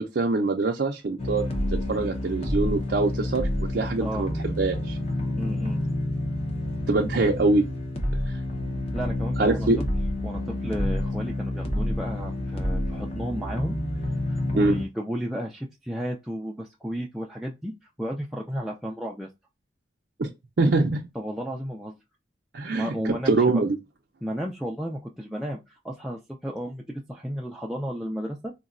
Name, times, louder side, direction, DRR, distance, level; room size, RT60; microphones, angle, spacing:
voice 1, 0.0-1.5 1.9-5.0 6.9-7.6 8.3-8.4 9.4-9.8 14.6-14.8 20.2-20.3 20.6-21.0 22.5-23.0 23.3-23.8, right 3 dB, 60° right, 0.5 m, -24 dB
sound 1, 1.2-14.8, left 1 dB, 35° left, 0.7 m, -29 dB
voice 2, 5.4-5.8 8.9-9.8 10.2-13.7 14.3-17.7 18.0-19.3 21.1-22.0 22.7-23.6 24.2-28.5, equal, ahead, 0.3 m, -33 dB
3.9 x 2.1 x 2.4 m
head